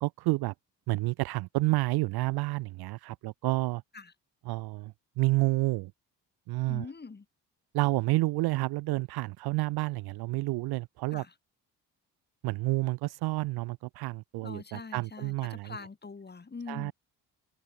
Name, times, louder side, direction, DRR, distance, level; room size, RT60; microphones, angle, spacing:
voice 1, 0.0-0.5 0.9-3.8 4.5-5.9 6.5-6.9 7.7-11.2 12.4-15.8 16.7-16.9, right 21 dB, 55° right, 0.5 m, -29 dB
voice 2, 6.7-7.2 11.1-11.3 14.4-16.9, left 4 dB, 20° left, 1.4 m, -43 dB
open air
hypercardioid pair, 45°, 48 cm